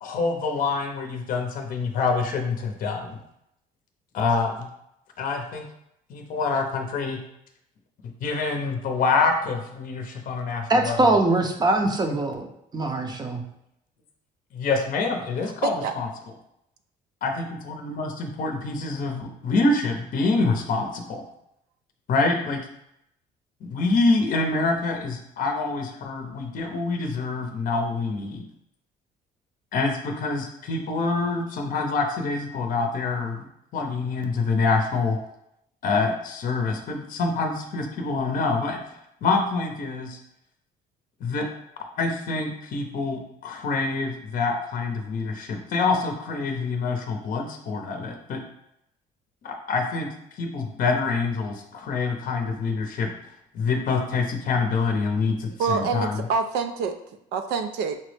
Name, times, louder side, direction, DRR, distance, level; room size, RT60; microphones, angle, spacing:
voice 1, 0.0-3.2 4.1-4.7 5.2-5.6 6.1-7.2 8.2-11.1 12.0-12.2 14.5-16.1 17.2-21.2 22.1-22.6 23.6-28.4 29.7-33.5 33.7-35.2 35.8-38.8 39.2-40.2 41.2-41.5 42.0-48.4 49.4-50.1 50.4-53.1 53.5-56.2, left 3 dB, 55° left, 3 dB, 0.6 m, -26 dB
voice 2, 10.7-12.5 12.7-13.4, right 2 dB, 25° right, 4 dB, 0.5 m, -22 dB
voice 3, 15.6-15.9 55.6-57.0 57.3-58.0, right 5 dB, 80° right, 7 dB, 0.4 m, -26 dB
5.4 x 2.0 x 3.2 m, 0.79 s
cardioid pair, 110°, 17 cm